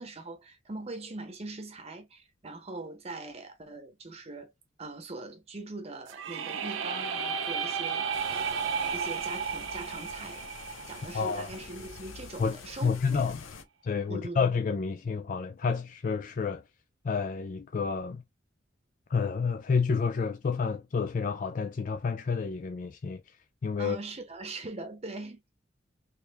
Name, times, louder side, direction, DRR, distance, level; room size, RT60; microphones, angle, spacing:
voice 1, 0.0-4.5 4.8-10.5 10.9-13.2 14.1-14.4 23.8-25.6, right 2 dB, 30° right, 0.9 m, -41 dB
sound 1, 6.1-11.9, right 6 dB, 75° right, 0.6 m, -33 dB
sound 2, 8.1-13.6, left 5 dB, 80° left, 0.6 m, -47 dB
voice 2, 11.1-11.5 12.4-13.5 13.8-16.6 17.0-18.2 19.1-24.0, left 5 dB, 40° left, 0.4 m, -30 dB
3.2 x 2.5 x 3.4 m
head